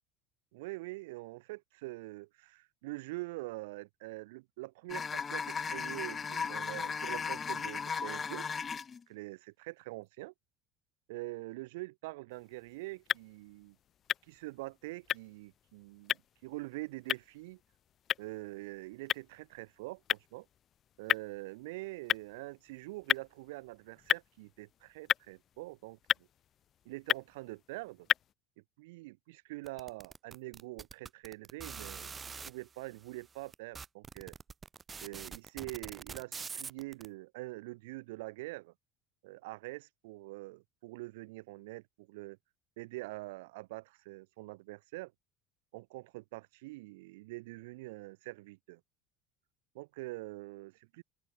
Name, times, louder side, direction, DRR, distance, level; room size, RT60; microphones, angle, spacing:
voice 1, 0.5-8.5 9.1-10.3 11.1-13.8 14.3-17.6 18.2-20.5 21.0-26.3 26.8-28.1 28.8-34.3 35.0-38.7 39.2-42.4 42.8-45.1 45.7-48.8 49.7-51.0, right 22 dB, 90° right, 1.5 m, -44 dB
sound 1, 4.9-9.0, left 6 dB, 25° left, 0.5 m, -36 dB
sound 2, 12.3-28.3, left 10 dB, 40° left, 1.3 m, -37 dB
sound 3, 29.7-32.5 33.2-33.3 33.5-37.1, right 5 dB, 25° right, 1.4 m, -44 dB
open air
supercardioid pair, 120°, 0 cm